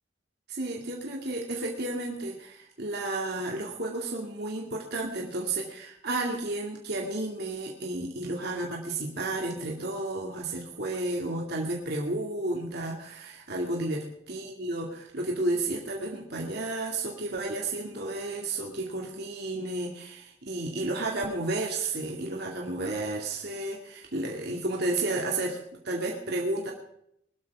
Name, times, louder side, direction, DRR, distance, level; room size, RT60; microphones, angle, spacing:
voice 1, 0.5-14.0 14.3-25.6 25.8-26.7, right 2 dB, 55° right, -1 dB, 2.4 m, -32 dB
21.5 x 12.5 x 3.6 m, 0.73 s
head